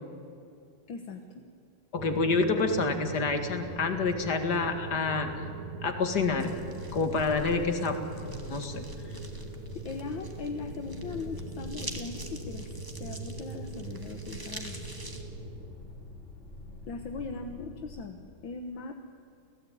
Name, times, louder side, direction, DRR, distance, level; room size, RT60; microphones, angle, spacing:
voice 1, 0.9-1.5 9.8-14.8 16.9-18.9, left 4 dB, 65° left, 5 dB, 2.0 m, -39 dB
voice 2, 1.9-5.3 5.8-6.5 6.9-8.0 8.5-8.8, left 4 dB, 50° left, 6 dB, 2.5 m, -28 dB
sound 1, 2.0-15.7, right 4 dB, 85° right, 2.8 m, -41 dB
sound 2, 6.0-18.0, left 2 dB, 30° left, 4.0 m, -46 dB
sound 3, 6.4-15.2, right 1 dB, 10° right, 2.1 m, -47 dB
29.5 x 17.5 x 9.3 m, 2.6 s
omnidirectional pair, 2.3 m